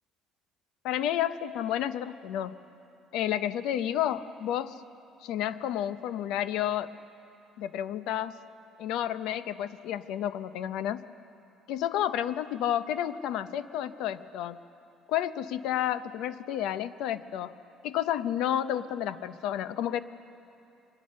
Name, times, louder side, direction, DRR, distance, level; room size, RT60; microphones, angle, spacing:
voice 1, 0.8-2.6 3.1-4.7 5.2-6.9 7.6-8.4 8.8-11.0 11.7-14.6 15.1-17.5 17.8-20.0, left 11 dB, 75° left, 14 dB, 0.7 m, -31 dB
23.0 x 20.5 x 6.5 m, 2.7 s
cardioid pair, 160°, 0 cm